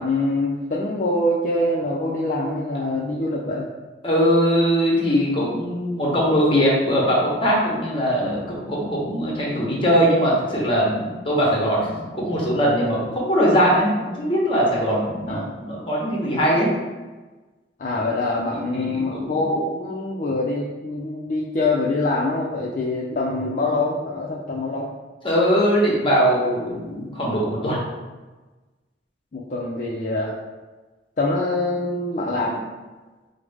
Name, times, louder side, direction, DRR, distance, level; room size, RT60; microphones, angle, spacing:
voice 1, 0.0-3.7 15.3-15.5 17.8-24.9 29.3-30.4 31.2-32.7, left 2 dB, 45° left, -4 dB, 0.4 m, -24 dB
voice 2, 4.0-16.7 18.5-18.6 18.9-19.0 25.2-27.8, equal, 30° left, -3 dB, 0.9 m, -21 dB
4.8 x 2.1 x 3.4 m, 1.2 s
head